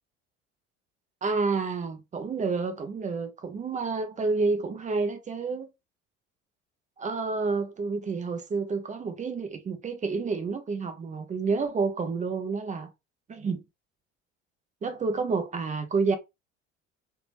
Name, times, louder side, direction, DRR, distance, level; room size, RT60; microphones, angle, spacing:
voice 1, 1.2-5.7 7.0-12.9 13.3-13.6 14.8-16.2, right 4 dB, 20° right, 0.6 m, -29 dB
3.4 x 2.9 x 2.9 m
figure-of-eight pair, 60°, 36 cm